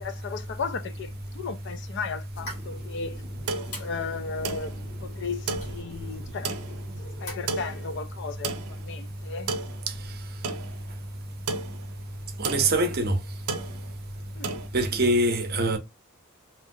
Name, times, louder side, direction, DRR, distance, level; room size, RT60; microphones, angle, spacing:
voice 1, 0.0-3.2 3.7-4.8 5.0-6.8 7.2-9.5 14.4-14.6 15.6-15.8, left 5 dB, 50° left, 0.4 m, -35 dB
sound 1, 2.3-8.0, left 1 dB, 75° left, 1.8 m, -44 dB
sound 2, 3.2-14.7, right 4 dB, 85° right, 0.5 m, -36 dB
voice 2, 12.4-13.2 14.7-15.8, right 1 dB, 45° right, 0.6 m, -23 dB
2.9 x 2.7 x 2.6 m
head